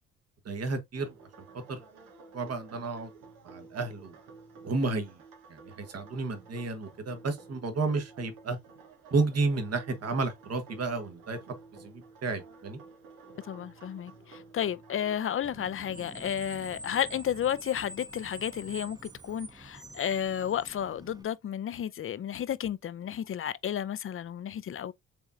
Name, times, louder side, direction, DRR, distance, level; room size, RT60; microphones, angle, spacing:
voice 1, 0.4-1.1 1.5-1.8 2.3-3.1 3.4-4.1 4.6-5.2 5.5-8.6 9.1-11.4 11.8-12.8, right 3 dB, 50° right, 1.4 m, -32 dB
sound 1, 0.9-15.2, right 4 dB, 80° right, 1.5 m, -52 dB
voice 2, 13.4-24.9, left 9 dB, 40° left, 0.5 m, -32 dB
Screech, 15.4-21.2, right 1 dB, 10° right, 0.9 m, -46 dB
5.0 x 3.6 x 2.7 m
supercardioid pair, 60°, 32 cm